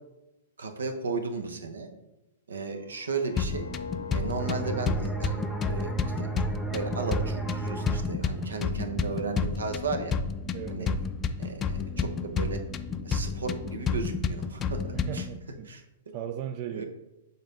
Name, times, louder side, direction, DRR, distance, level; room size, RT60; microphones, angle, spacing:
voice 1, 0.6-1.9 2.5-3.7 4.1-5.9 6.2-6.3 6.7-10.2 10.7-10.9 11.4-12.6 13.0-15.3 15.7-16.2 16.7-16.9, right 4 dB, 80° right, 7 dB, 0.9 m, -34 dB
sound 1, 2.8-7.8 8.2-8.5, left 7 dB, 85° left, 0.4 m, -45 dB
sound 2, 3.4-15.4, left 5 dB, 25° left, 0.4 m, -31 dB
sound 3, 4.4-9.8, right 5 dB, 5° right, 0.9 m, -35 dB
voice 2, 10.5-11.1 14.9-15.7 16.1-16.8, right 10 dB, 45° right, 9 dB, 0.3 m, -37 dB
7.0 x 4.1 x 3.8 m, 0.95 s
hypercardioid pair, 110°, 0 cm